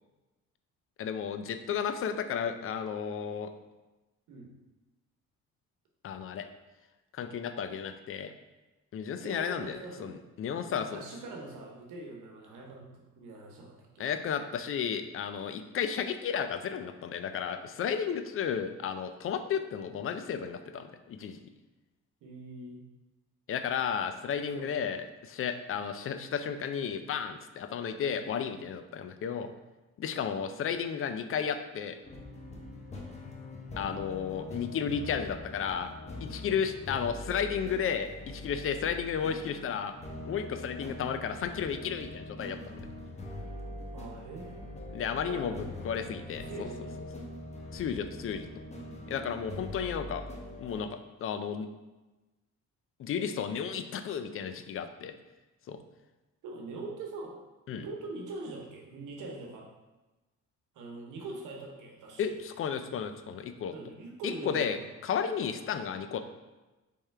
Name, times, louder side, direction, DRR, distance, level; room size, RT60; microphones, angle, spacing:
voice 1, 1.0-3.5 6.0-6.5 7.1-8.3 8.9-11.0 14.0-21.4 23.5-29.5 30.0-32.0 33.8-35.9 36.2-39.9 40.2-42.8 44.9-46.7 47.7-48.5 49.1-50.2 50.6-51.7 53.0-55.1 55.7-55.8 57.7-57.8 62.2-63.7 64.2-64.8 65.0-66.2, left 7 dB, 45° left, 9 dB, 0.4 m, -33 dB
voice 2, 9.1-10.2 10.7-14.0 22.2-22.8 24.5-24.7 43.9-44.7 45.1-47.0 56.4-57.4 57.7-59.7 60.7-62.3 63.7-64.9, right 2 dB, 90° right, 0 dB, 1.0 m, -43 dB
sound 1, 32.0-50.8, left 1 dB, 20° left, 0.8 m, -43 dB
3.5 x 3.2 x 4.5 m, 1.1 s
cardioid pair, 90°, 30 cm